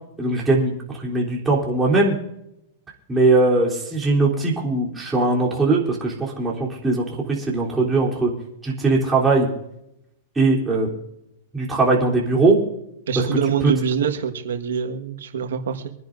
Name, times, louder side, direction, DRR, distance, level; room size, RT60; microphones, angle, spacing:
voice 1, 0.2-2.1 3.1-8.3 8.6-9.5 10.4-10.9 11.5-12.6 13.2-13.3 13.6-13.7, right 3 dB, 10° right, -4 dB, 3.5 m, -20 dB
voice 2, 13.1-15.9, right 7 dB, 85° right, 5 dB, 1.5 m, -25 dB
26.0 x 10.5 x 2.6 m, 0.83 s
hypercardioid pair, 140°, 0 cm